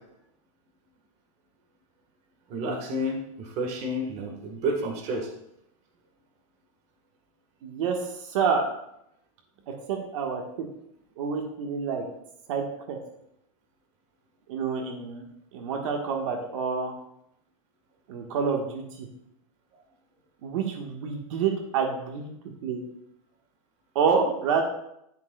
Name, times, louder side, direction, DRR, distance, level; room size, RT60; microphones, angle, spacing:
voice 1, 2.5-5.3, right 1 dB, 40° right, 3 dB, 1.4 m, -30 dB
voice 2, 7.6-8.7 9.7-10.4 11.2-12.0 12.5-13.0 14.5-15.2 15.5-16.9 18.1-19.1 20.4-22.3 22.6-22.8 23.9-24.6, right 6 dB, 65° right, 2 dB, 1.3 m, -28 dB
10.5 x 6.4 x 2.2 m, 0.77 s
supercardioid pair, 140°, 18 cm